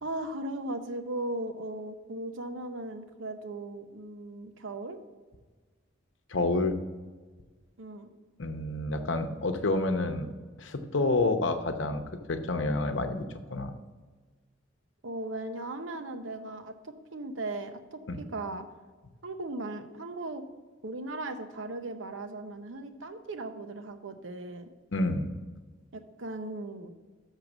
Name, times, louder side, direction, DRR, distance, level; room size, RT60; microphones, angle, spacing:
voice 1, 0.0-5.0 7.8-8.1 15.0-18.7 19.2-20.4 20.8-24.7 25.9-26.9, right 2 dB, 75° right, 8 dB, 0.8 m, -37 dB
voice 2, 6.3-6.8 8.4-10.3 10.6-12.0 12.3-13.2 13.5-13.7 18.1-18.2 24.9-25.3, left 2 dB, 70° left, 7 dB, 0.8 m, -28 dB
6.6 x 6.5 x 6.0 m, 1.4 s
head